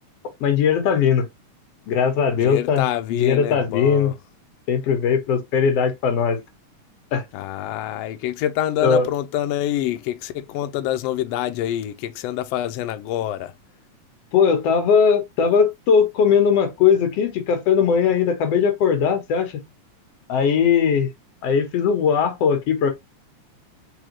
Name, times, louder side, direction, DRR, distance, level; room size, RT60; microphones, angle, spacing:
voice 1, 0.4-1.3 1.9-4.1 4.7-6.4 7.1-7.2 8.8-9.1 14.3-19.6 20.3-21.1 21.4-22.9, left 6 dB, 60° left, 2.0 m, -19 dB
voice 2, 2.4-4.1 7.3-13.5, left 12 dB, 80° left, 1.5 m, -26 dB
4.9 x 3.5 x 2.9 m
omnidirectional pair, 3.4 m